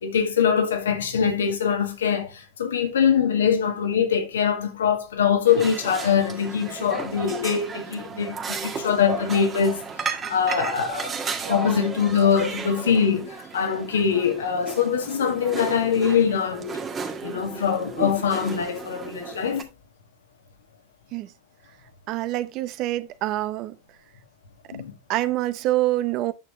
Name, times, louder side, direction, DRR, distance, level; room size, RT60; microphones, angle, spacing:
voice 1, 0.0-16.7 17.2-19.7 24.7-25.0, left 7 dB, 85° left, 1.9 m, -23 dB
sound 1, 5.5-19.6, right 5 dB, 25° right, 1.7 m, -34 dB
voice 2, 22.1-23.7 25.1-26.3, right 16 dB, 50° right, 0.9 m, -25 dB
9.3 x 6.4 x 3.0 m
hypercardioid pair, 95°, 0 cm